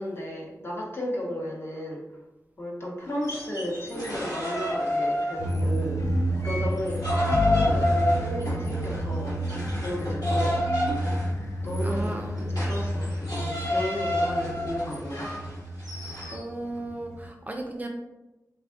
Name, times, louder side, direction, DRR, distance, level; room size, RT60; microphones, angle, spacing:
voice 1, 0.0-2.0 2.6-9.3 9.7-10.8 11.6-12.2 12.5-15.3, equal, 40° left, -3 dB, 0.9 m, -34 dB
sound 1, 3.1-5.8 6.2-16.4, left 1 dB, 80° left, 1.4 m, -30 dB
sound 2, 5.4-17.3, right 1 dB, 55° left, 0.4 m, -30 dB
voice 2, 11.8-12.4 16.3-17.9, right 2 dB, 25° right, 2 dB, 0.4 m, -35 dB
3.4 x 2.4 x 3.4 m, 1.0 s
wide cardioid pair, 95°, 6 cm